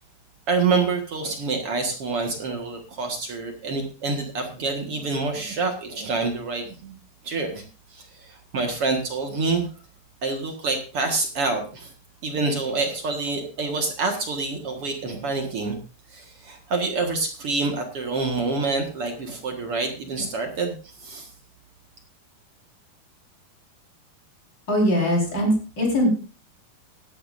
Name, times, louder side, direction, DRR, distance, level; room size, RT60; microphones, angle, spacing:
voice 1, 0.5-7.0 7.2-7.6 7.9-9.7 10.2-11.9 12.2-15.8 16.1-21.3, right 3 dB, 50° right, 4 dB, 1.8 m, -27 dB
voice 2, 24.7-26.1, equal, 25° left, -1 dB, 4.9 m, -21 dB
17.0 x 11.5 x 2.6 m, 0.36 s
omnidirectional pair, 4.6 m